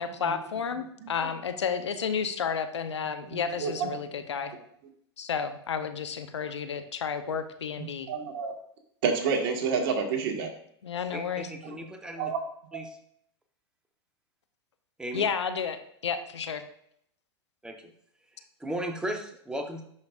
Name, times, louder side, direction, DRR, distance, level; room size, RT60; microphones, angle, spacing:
voice 1, 0.0-4.5 5.2-8.1 10.8-11.5 15.1-16.7, left 6 dB, 85° left, 9 dB, 0.7 m, -31 dB
voice 2, 3.3-3.9 7.8-8.5 9.0-10.5 11.6-11.7 12.2-12.4 12.7-12.9, right 5 dB, 55° right, 3 dB, 1.6 m, -29 dB
voice 3, 11.1-12.3 12.7-13.0 15.0-15.2 17.6-17.9 18.6-19.8, right 1 dB, 5° right, 4 dB, 1.0 m, -36 dB
10.5 x 5.2 x 2.5 m, 0.70 s
hypercardioid pair, 110°, 14 cm